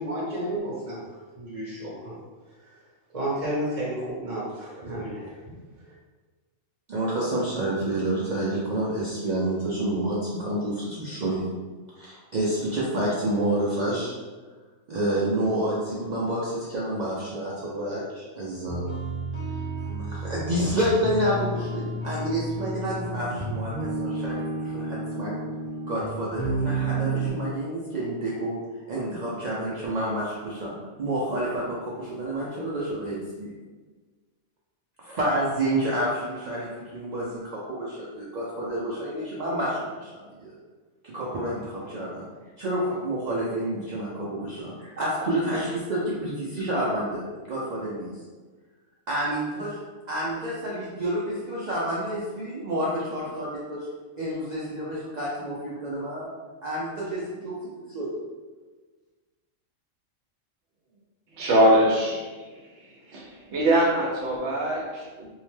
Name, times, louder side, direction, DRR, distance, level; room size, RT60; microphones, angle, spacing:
voice 1, 0.0-2.1 2.6-2.8 3.1-5.5, right 1 dB, 30° right, -8 dB, 0.8 m, -32 dB
voice 2, 6.9-11.5 12.0-14.1 14.9-18.9 20.1-25.4 25.9-28.6 28.9-30.7 31.0-33.5 35.0-40.6 41.0-42.3 42.6-48.1 49.1-49.8 50.1-53.9 54.2-56.3 56.6-58.1, right 1 dB, 85° right, -7 dB, 0.3 m, -29 dB
sound 1, 18.7-27.3, right 2 dB, 30° left, 0.7 m, -31 dB
voice 3, 61.4-62.3 63.1-65.3, right 1 dB, 65° right, -2 dB, 0.8 m, -22 dB
2.7 x 2.1 x 3.1 m, 1.4 s
omnidirectional pair, 1.3 m